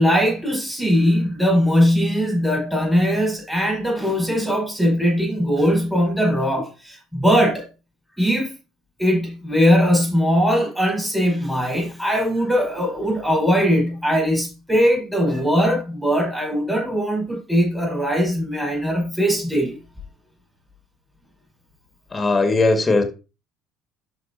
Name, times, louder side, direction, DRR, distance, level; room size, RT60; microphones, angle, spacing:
voice 1, 0.0-7.6 8.2-8.5 9.0-19.8, equal, ahead, 5.1 m, -20 dB
voice 2, 22.1-23.0, left 3 dB, 20° left, 2.1 m, -18 dB
11.5 x 5.0 x 2.9 m
figure-of-eight pair, 60°, 0 cm